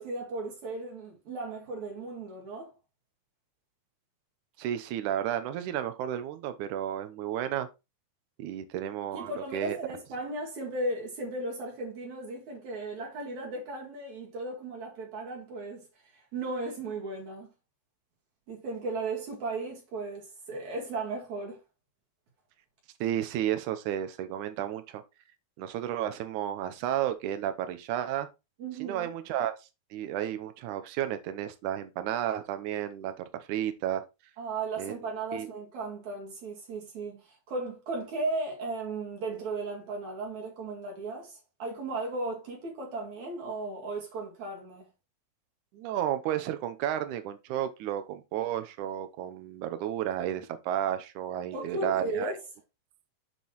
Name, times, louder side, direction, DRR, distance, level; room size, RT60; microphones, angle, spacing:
voice 1, 0.0-2.7 9.1-15.9 16.1-17.5 18.5-21.6 28.6-29.1 34.4-44.9 51.5-52.4, right 2 dB, 55° right, 2.9 m, -36 dB
voice 2, 4.6-7.7 8.4-9.8 23.0-25.0 25.6-28.3 28.8-29.5 29.9-34.0 34.8-34.9 35.3-35.5 45.7-52.3, right 11 dB, 80° right, 1.8 m, -32 dB
7.5 x 6.8 x 3.1 m
omnidirectional pair, 4.4 m